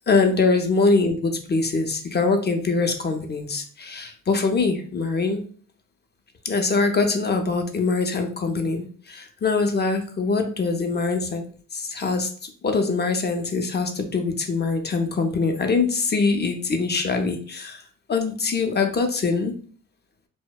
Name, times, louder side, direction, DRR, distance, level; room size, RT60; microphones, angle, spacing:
voice 1, 0.1-5.4 6.4-11.4 11.7-17.8 18.1-19.5, left 4 dB, 30° left, 5 dB, 0.5 m, -23 dB
2.6 x 2.0 x 2.2 m, 0.43 s
cardioid pair, 75°, 32 cm